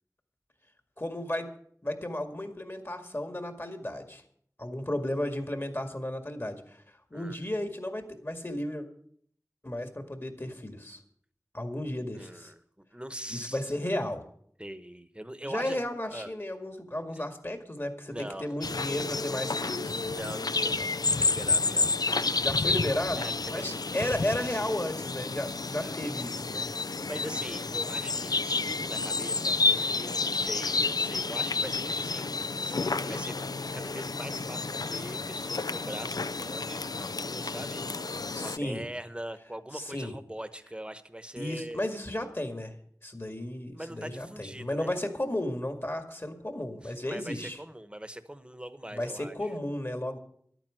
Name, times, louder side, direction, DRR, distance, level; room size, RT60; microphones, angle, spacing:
voice 1, 1.0-1.5 1.8-4.2 4.6-6.8 7.1-8.9 9.6-11.0 11.5-12.5 13.3-14.3 15.4-20.0 22.4-26.7 38.3-38.9 39.7-40.1 41.4-42.7 43.0-47.6 48.9-50.2, left 1 dB, 35° left, 6 dB, 2.0 m, -34 dB
voice 2, 12.1-13.6 14.6-15.8 16.1-16.3 17.2-17.3 18.1-18.5 20.1-22.3 22.7-22.8 23.2-24.3 25.7-26.1 27.1-37.8 38.1-41.8 43.7-45.0 46.8-49.5, right 1 dB, 15° right, 12 dB, 1.0 m, -42 dB
sound 1, 18.6-38.6, left 3 dB, 85° left, 0.4 m, -30 dB
12.0 x 9.1 x 7.7 m, 0.63 s
wide cardioid pair, 45°, 7 cm